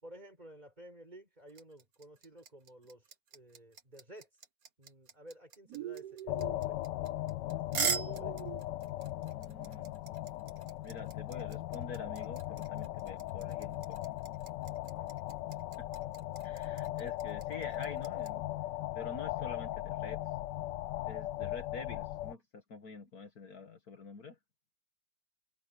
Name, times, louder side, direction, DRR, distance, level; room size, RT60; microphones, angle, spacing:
voice 1, 0.0-4.3 4.8-6.8 7.5-8.4 14.9-15.1, right 1 dB, 20° right, 5.6 m, -54 dB
sound 1, 1.5-18.3, right 6 dB, 55° right, 1.8 m, -41 dB
sound 2, 5.7-6.6 7.7-8.6, right 13 dB, 70° right, 1.1 m, -43 dB
sound 3, 6.3-22.3, left 15 dB, 75° left, 1.2 m, -38 dB
voice 2, 9.3-9.9 10.8-14.0 15.8-15.9 16.4-18.5 18.9-20.4 21.1-24.4, left 4 dB, 55° left, 1.9 m, -47 dB
omnidirectional pair, 2.0 m